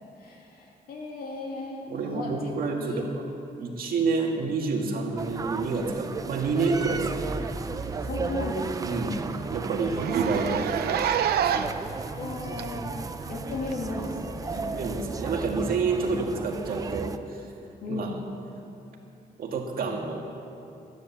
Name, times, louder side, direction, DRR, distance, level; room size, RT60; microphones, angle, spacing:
voice 1, 0.2-2.4 2.8-3.0 8.0-8.7 9.8-10.0 10.3-10.7 12.2-12.9 13.3-14.8 17.8-18.2, left 3 dB, 75° left, -1 dB, 2.6 m, -36 dB
voice 2, 1.9-3.2 3.6-7.2 8.8-9.2 9.5-11.3 14.5-17.4 17.9-18.1 19.4-20.2, right 4 dB, 70° right, 1 dB, 1.8 m, -29 dB
sound 1, 5.2-17.2, right 4 dB, 20° right, 0.4 m, -34 dB
Zipper (clothing), 7.4-7.5 7.8-7.9 8.3-8.4 8.7-8.8 9.1-9.2 9.9-11.9 12.6-12.7 13.7-13.8, right 9 dB, 90° right, 0.6 m, -27 dB
13.0 x 10.5 x 7.1 m, 2.9 s
wide cardioid pair, 180°, 16 cm